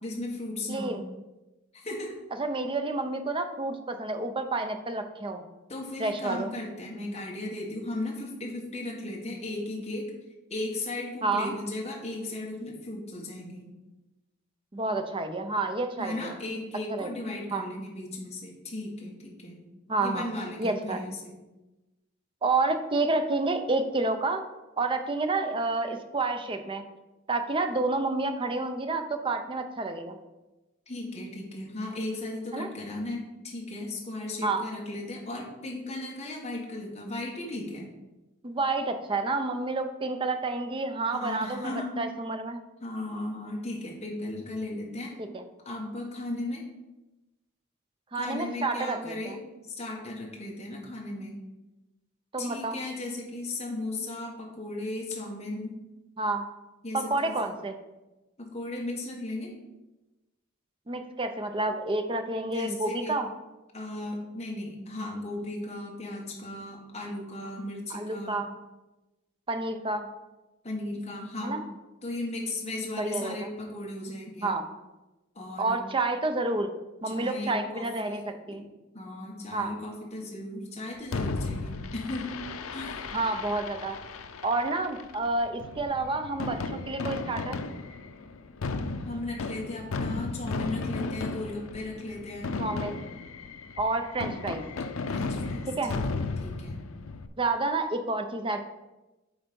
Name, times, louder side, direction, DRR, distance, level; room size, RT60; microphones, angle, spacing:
voice 1, 0.0-1.0 1.7-2.2 5.7-10.1 10.5-13.7 16.0-19.6 20.0-21.3 30.9-37.9 41.1-42.0 42.8-45.1 45.6-46.6 48.1-49.4 49.6-51.3 52.4-55.7 56.8-57.4 58.4-59.5 62.5-63.2 63.7-68.4 70.6-71.5 72.0-74.5 75.3-75.8 77.0-78.6 78.9-82.4 82.7-83.0 89.0-92.5 95.1-96.0 96.4-96.8, left 2 dB, 30° left, -2 dB, 1.6 m, -36 dB
voice 2, 0.7-1.0 2.4-5.4 6.0-6.5 11.2-11.5 14.7-16.4 16.9-17.1 17.5-17.6 19.9-20.2 20.6-21.0 22.4-24.4 24.8-26.8 27.3-30.2 32.5-32.7 34.4-34.6 38.4-42.6 45.2-45.4 48.1-49.4 52.3-52.8 56.2-56.4 56.9-57.8 60.9-63.3 67.9-68.5 69.5-70.1 71.4-71.6 73.0-73.5 74.4-74.6 75.6-76.7 77.0-78.6 79.5-79.7 83.1-84.0 84.4-87.6 92.6-93.0 93.8-94.6 95.8-95.9 97.4-98.6, right 3 dB, 25° right, 7 dB, 0.6 m, -29 dB
Fireworks, 81.1-97.3, left 3 dB, 90° left, 0.6 m, -35 dB
8.8 x 4.1 x 5.3 m, 1.0 s
head